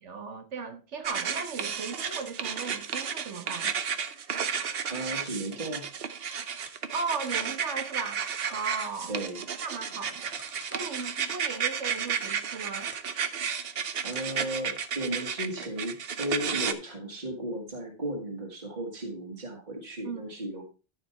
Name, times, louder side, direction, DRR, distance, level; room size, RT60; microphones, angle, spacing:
voice 1, 0.0-3.7 6.9-8.2 8.5-9.2 9.6-10.4 10.7-12.9 20.0-20.4, right 4 dB, 90° right, 1.7 m, -36 dB
sound 1, 1.0-16.7, right 7 dB, 60° right, 1.0 m, -33 dB
sound 2, 1.6-4.0 4.7-5.5 5.8-5.9 6.2-7.8 8.2-9.3 9.9-11.2 11.9-15.0 15.3-15.8, equal, 10° left, 1.6 m, -51 dB
voice 2, 4.9-5.9 9.1-9.4 14.0-20.6, right 1 dB, 40° right, 1.9 m, -35 dB
13.5 x 5.1 x 4.3 m
omnidirectional pair, 1.2 m